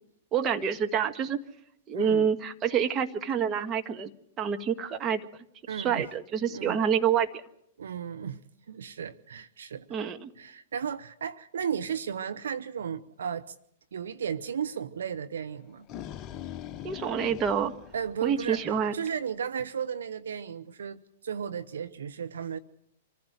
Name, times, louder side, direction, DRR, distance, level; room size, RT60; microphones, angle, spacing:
voice 1, 0.3-1.4 1.9-4.1 4.4-5.2 5.7-7.3 9.9-10.3 16.8-17.7 18.2-18.9, right 7 dB, 30° right, 1.6 m, -27 dB
voice 2, 1.9-2.3 5.7-6.1 6.5-6.8 7.8-8.4 8.7-10.0 10.4-13.5 13.9-15.9 17.9-22.6, right 7 dB, 75° right, 0.8 m, -34 dB
sound 1, 15.6-18.8, left 11 dB, 35° left, 0.8 m, -42 dB
26.5 x 15.0 x 8.0 m
hypercardioid pair, 110°, 0 cm